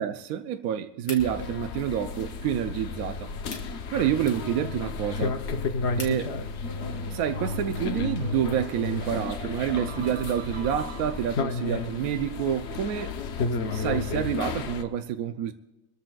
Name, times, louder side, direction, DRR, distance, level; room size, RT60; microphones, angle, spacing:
voice 1, 0.0-3.3 3.9-5.4 6.0-6.3 7.1-13.2 13.7-15.5, right 9 dB, 70° right, 0.9 m, -28 dB
sound 1, 1.0-6.3, left 3 dB, 75° left, 2.5 m, -48 dB
sound 2, 1.2-14.8, left 4 dB, 60° left, 0.7 m, -32 dB
sound 3, 6.6-11.6, right 9 dB, 85° right, 1.4 m, -43 dB
25.0 x 13.5 x 2.3 m
omnidirectional pair, 2.0 m